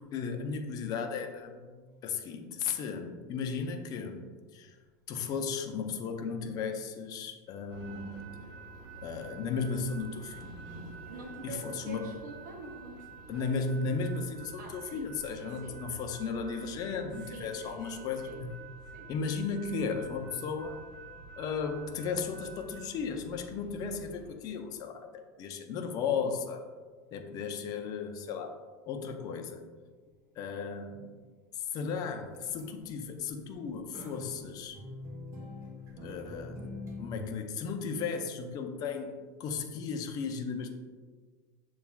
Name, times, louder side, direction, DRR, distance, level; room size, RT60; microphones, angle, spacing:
voice 1, 0.1-4.2 4.5-4.8 5.1-8.4 9.0-10.4 11.4-12.1 13.3-18.5 19.1-20.8 21.4-26.7 27.1-28.6 28.9-29.6 30.4-31.1 31.5-34.8 36.0-36.7 37.0-39.1 39.4-40.7, left 5 dB, 40° left, 5 dB, 0.5 m, -35 dB
sound 1, 7.7-24.3, right 3 dB, 50° right, 1.2 m, -48 dB
voice 2, 11.1-13.4 14.6-15.8 17.2-18.4 18.9-19.1, right 3 dB, 85° right, 0 dB, 0.6 m, -47 dB
sound 2, 32.3-32.8 33.9-37.3, left 1 dB, 30° right, 0.9 m, -43 dB
6.8 x 2.3 x 2.3 m, 1.5 s
supercardioid pair, 110°, 10 cm